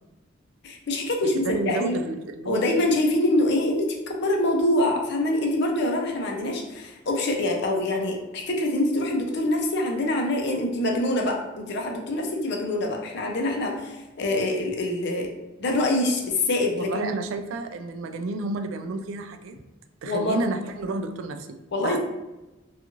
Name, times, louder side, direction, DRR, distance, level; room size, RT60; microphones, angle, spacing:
voice 1, 0.6-1.9 2.5-15.3 15.6-17.1 20.1-20.4 21.7-22.0, left 1 dB, 60° left, 1 dB, 0.5 m, -25 dB
voice 2, 1.4-2.6 16.8-19.6 20.0-22.0, right 3 dB, 75° right, 7 dB, 0.3 m, -31 dB
2.5 x 2.3 x 2.9 m, 1.0 s
head